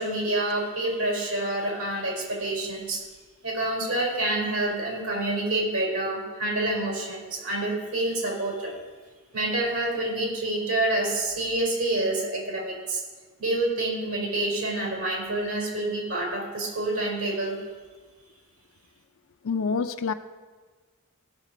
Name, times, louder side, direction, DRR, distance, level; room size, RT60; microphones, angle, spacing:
voice 1, 0.0-3.0 3.4-8.7 9.3-13.0 13.4-17.6, right 2 dB, 85° right, -1 dB, 3.9 m, -27 dB
voice 2, 19.4-20.1, left 5 dB, 65° left, 8 dB, 0.4 m, -26 dB
16.5 x 6.5 x 5.0 m, 1.4 s
head